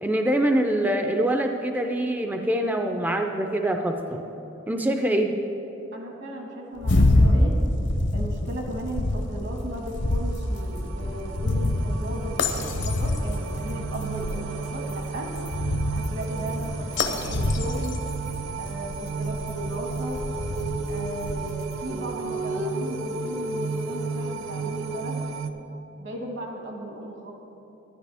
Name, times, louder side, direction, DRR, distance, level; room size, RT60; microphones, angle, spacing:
voice 1, 0.0-4.2 4.7-5.4, right 1 dB, 10° right, 4 dB, 0.4 m, -24 dB
voice 2, 5.9-7.5 8.1-15.3 15.9-18.0 18.6-20.2 20.9-25.2 26.0-27.3, right 1 dB, 65° right, 1 dB, 1.6 m, -36 dB
sound 1, 6.8-21.9, left 1 dB, 65° left, 0.7 m, -26 dB
sound 2, 9.3-25.5, right 5 dB, 80° right, 0.5 m, -34 dB
Female singing, 19.5-25.3, right 1 dB, 40° right, 0.7 m, -34 dB
11.5 x 10.5 x 3.4 m, 3.0 s
head